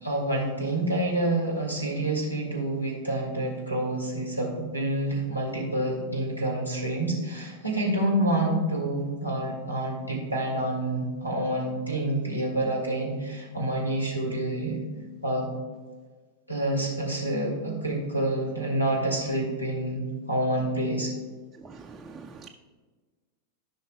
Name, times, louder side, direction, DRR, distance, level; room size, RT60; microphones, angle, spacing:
voice 1, 0.0-14.8 15.2-15.5 16.5-20.0 20.3-21.1, right 1 dB, 90° left, 2.2 m, -28 dB
voice 2, 21.6-22.5, right 4 dB, 15° right, 0.5 m, -44 dB
14.5 x 5.8 x 2.3 m
figure-of-eight pair, 90°, 0 cm